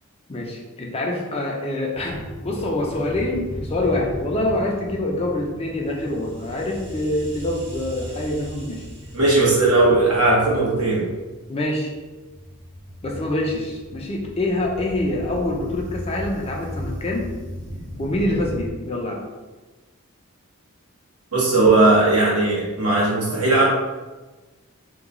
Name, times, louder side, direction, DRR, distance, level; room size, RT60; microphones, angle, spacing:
voice 1, 0.3-8.9 11.5-11.9 13.0-17.3 18.0-19.2, left 1 dB, 25° left, -1 dB, 0.4 m, -25 dB
sound 1, 1.9-18.7, equal, 55° right, 0.8 m, -36 dB
voice 2, 9.1-11.1 21.3-23.7, right 2 dB, 85° right, -6 dB, 1.2 m, -17 dB
2.9 x 2.3 x 3.6 m, 1.2 s
head